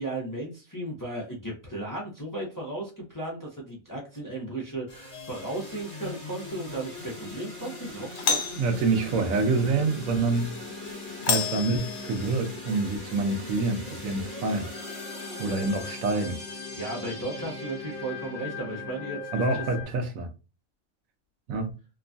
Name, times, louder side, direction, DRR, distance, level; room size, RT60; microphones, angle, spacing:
voice 1, 0.0-8.5 16.7-19.6, right 2 dB, 20° left, 0.7 m, -35 dB
sound 1, 4.9-19.8, left 2 dB, 40° left, 1.0 m, -40 dB
Doorbell, 5.1-5.6 8.1-8.7 11.2-12.4, left 6 dB, 65° left, 0.5 m, -29 dB
voice 2, 8.6-10.5 11.3-14.7 15.4-16.4 19.3-20.3 21.5-21.7, right 3 dB, 75° right, 1.1 m, -27 dB
sound 2, 9.2-19.2, left 7 dB, 80° left, 1.0 m, -44 dB
3.0 x 2.2 x 2.5 m
omnidirectional pair, 1.4 m